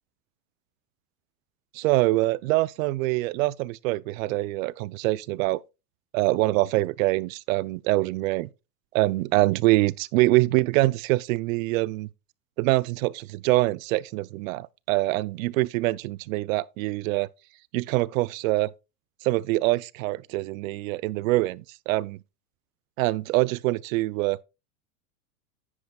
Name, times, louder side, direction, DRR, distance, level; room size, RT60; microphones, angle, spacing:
voice 1, 1.7-5.6 6.1-8.5 8.9-12.1 12.6-17.3 17.7-18.7 19.2-22.2 23.0-24.4, right 19 dB, 60° right, 0.6 m, -24 dB
9.8 x 9.6 x 2.3 m
supercardioid pair, 125°, 45 cm